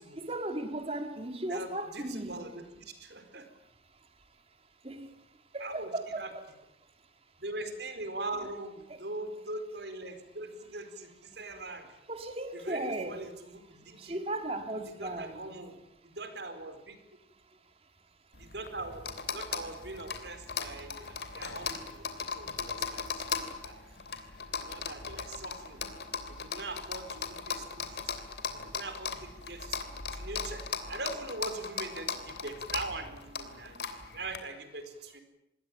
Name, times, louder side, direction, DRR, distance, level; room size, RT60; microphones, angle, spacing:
voice 1, 0.2-2.4 4.8-5.1 5.5-6.4 12.1-13.3 14.0-15.5, right 1 dB, 35° right, 8 dB, 2.1 m, -36 dB
voice 2, 1.5-3.5 5.6-5.9 6.2-6.3 7.4-11.9 12.5-14.2 15.0-15.8 16.0-17.0 18.3-23.2 23.6-23.8 24.5-25.8 26.3-28.1 28.5-33.8 34.1-35.2, right 2 dB, 70° right, 9 dB, 4.6 m, -42 dB
sound 1, 18.3-34.4, left 6 dB, 70° left, 3.0 m, -38 dB
26.5 x 21.0 x 9.1 m, 0.84 s
head